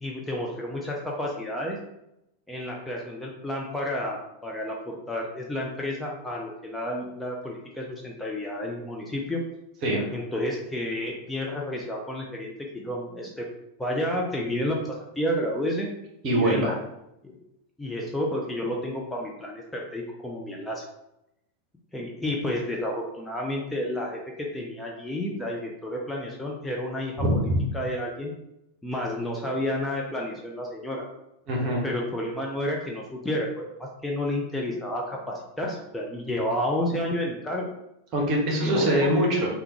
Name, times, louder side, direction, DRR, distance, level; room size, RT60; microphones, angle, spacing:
voice 1, 0.0-1.8 2.5-9.4 10.1-13.4 13.8-15.9 16.3-16.7 17.2-17.4 17.8-20.8 21.9-24.2 24.5-28.3 28.8-31.1 31.8-37.7 38.6-39.1, left 1 dB, 5° left, -2 dB, 0.4 m, -31 dB
voice 2, 9.8-10.1 16.2-16.8 27.2-27.6 31.5-31.8 38.1-39.5, right 1 dB, 35° right, -1 dB, 0.9 m, -23 dB
3.4 x 2.3 x 2.9 m, 0.85 s
figure-of-eight pair, 90°, 0 cm